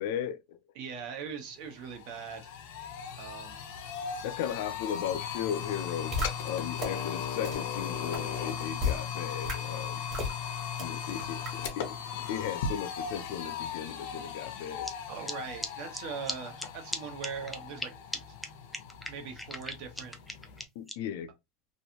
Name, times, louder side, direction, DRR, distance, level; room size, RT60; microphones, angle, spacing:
voice 1, 0.0-0.6 4.2-6.2 6.4-10.0 10.6-12.0 12.3-14.9 20.8-21.3, left 9 dB, 70° left, 0.4 m, -36 dB
voice 2, 0.7-2.5 3.2-3.7 15.1-17.9 19.1-20.2, right 6 dB, 55° right, 0.9 m, -41 dB
sound 1, 1.2-1.3 1.6-20.6, left 7 dB, 85° left, 0.8 m, -38 dB
sound 2, 6.1-6.3 6.8-6.9 7.4-7.5 8.1-8.2 8.8-9.0 9.4-9.5 10.1-10.3 10.8-10.9 11.4-11.5, left 3 dB, 30° right, 1.2 m, -30 dB
sound 3, 14.8-14.9 15.3-15.4 15.6-15.7 15.9-16.0 16.3-16.4 16.6-16.7 16.9-17.0 17.2-17.9 18.1-18.2 18.4-18.5 18.7-20.9, left 1 dB, ahead, 0.4 m, -36 dB
3.1 x 2.6 x 2.8 m
cardioid pair, 175°, 0 cm